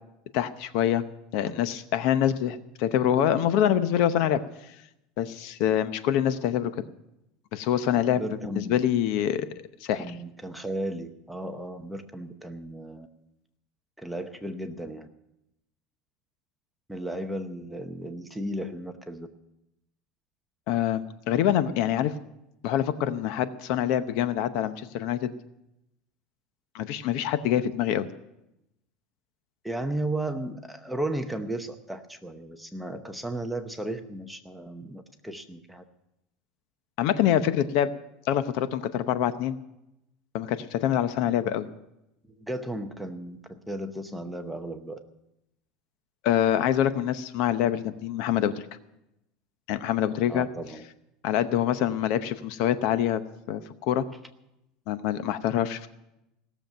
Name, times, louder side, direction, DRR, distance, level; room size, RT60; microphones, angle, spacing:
voice 1, 0.3-1.0 1.3-4.4 5.2-6.9 7.5-8.2 8.5-9.5 9.8-10.1 20.7-22.1 22.6-25.3 26.7-28.1 37.0-37.9 38.3-39.6 40.3-41.7 46.2-48.5 49.7-50.5 51.2-53.2 53.5-54.1 54.9-55.9, left 10 dB, 55° left, 12 dB, 0.8 m, -25 dB
voice 2, 8.1-8.8 9.9-13.1 14.0-15.1 16.9-19.3 29.6-35.8 41.4-41.5 42.3-43.4 43.7-45.0 50.3-50.8, right 1 dB, ahead, 5 dB, 0.8 m, -35 dB
17.0 x 7.2 x 9.1 m, 0.87 s
cardioid pair, 165°, 0 cm